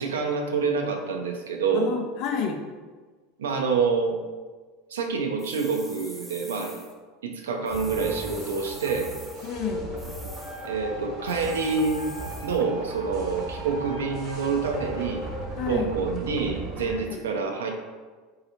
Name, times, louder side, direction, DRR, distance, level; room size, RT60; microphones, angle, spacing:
voice 1, 0.0-2.0 3.4-4.2 4.9-6.8 7.2-9.1 10.6-12.0 12.4-15.3 15.7-17.7, right 5 dB, 70° right, 4 dB, 0.4 m, -27 dB
voice 2, 1.7-2.6 9.4-9.9 15.6-16.0 16.9-17.2, left 7 dB, 50° left, 5 dB, 0.4 m, -31 dB
sound 1, 5.4-6.9 7.7-9.5 10.0-10.7 11.3-12.6, equal, 5° right, 0.5 m, -45 dB
sound 2, 7.7-16.9, right 1 dB, 45° right, 0.8 m, -37 dB
Wind instrument woodwind instrument, 10.4-15.4, equal, 80° left, 0.7 m, -43 dB
3.9 x 2.8 x 2.8 m, 1.4 s
figure-of-eight pair, 75°, 0 cm